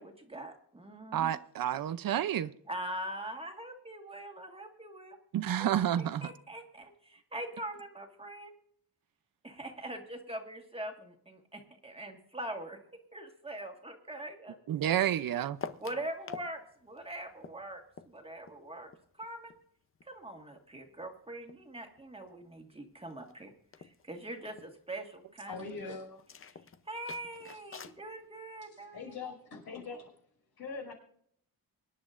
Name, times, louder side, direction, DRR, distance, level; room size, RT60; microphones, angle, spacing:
voice 1, 0.0-1.3 2.7-5.2 5.6-5.7 6.0-8.5 9.4-14.6 15.8-18.9 19.2-19.5 20.0-23.5 23.8-26.0 26.9-29.3, right 1 dB, 15° right, 1.7 m, -43 dB
voice 2, 1.1-2.5 5.3-6.3 14.7-15.6, right 10 dB, 65° right, 0.7 m, -30 dB
sound 1, 15.6-16.5 16.8-19.6 19.9-21.7 22.0-22.5 22.8-22.9 23.1-23.4 23.7-24.7 26.2-28.0, left 6 dB, 35° left, 0.7 m, -48 dB
voice 3, 25.5-26.2 28.6-30.1 30.6-30.9, left 4 dB, 75° left, 5.6 m, -42 dB
24.5 x 10.5 x 2.6 m
cardioid pair, 125°, 37 cm